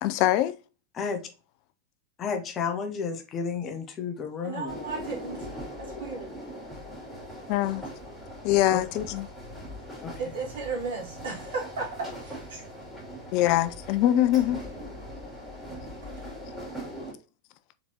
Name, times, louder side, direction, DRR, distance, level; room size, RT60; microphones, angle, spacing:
voice 1, 0.0-0.5 7.5-7.8 8.4-9.3 13.3-14.6, left 13 dB, 45° left, 0.3 m, -23 dB
voice 2, 2.2-4.8 8.7-8.8 10.0-10.1, left 6 dB, 30° left, 0.8 m, -32 dB
voice 3, 4.4-5.5 5.8-6.3 10.2-12.6, right 4 dB, 65° right, 2.2 m, -35 dB
sound 1, 4.7-17.1, equal, ahead, 2.6 m, -41 dB
4.3 x 4.0 x 2.8 m
figure-of-eight pair, 90°, 0 cm